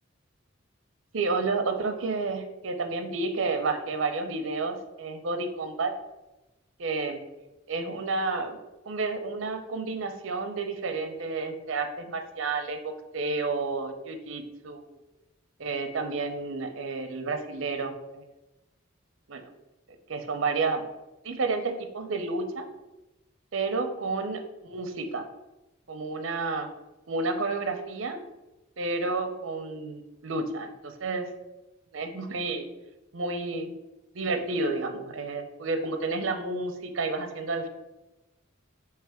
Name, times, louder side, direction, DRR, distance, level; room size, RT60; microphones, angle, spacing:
voice 1, 1.1-5.9 6.8-7.2 7.7-8.6 8.9-14.8 15.6-18.2 19.3-19.4 20.1-20.8 21.2-22.6 23.5-25.3 25.9-26.7 27.1-28.2 28.8-31.3 31.9-32.6 33.1-33.7 34.1-37.7, right 3 dB, 75° right, 7 dB, 0.6 m, -30 dB
3.3 x 3.2 x 4.8 m, 0.98 s
head